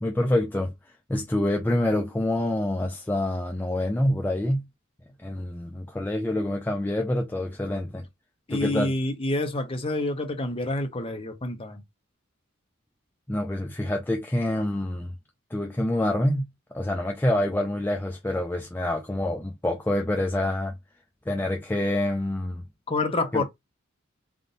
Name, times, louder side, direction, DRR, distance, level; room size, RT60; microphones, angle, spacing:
voice 1, 0.0-4.7 5.2-8.1 8.5-8.9 13.3-15.1 15.5-16.5 16.7-20.7 21.3-22.6 23.3-23.4, left 1 dB, 10° left, 0.4 m, -26 dB
voice 2, 8.5-11.8 22.9-23.4, left 2 dB, 25° left, 0.8 m, -28 dB
3.6 x 2.6 x 3.8 m
head